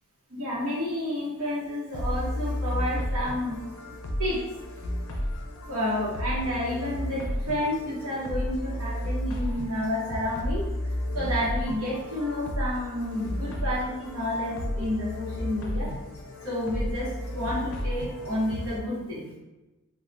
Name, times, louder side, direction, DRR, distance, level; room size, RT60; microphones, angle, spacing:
voice 1, 0.3-3.6 4.2-4.4 5.7-10.7 11.1-15.9 16.4-19.3, left 1 dB, 70° right, -8 dB, 0.8 m, -30 dB
sound 1, 1.9-18.8, left 1 dB, 70° left, 0.4 m, -32 dB
3.2 x 2.1 x 2.5 m, 1.1 s
head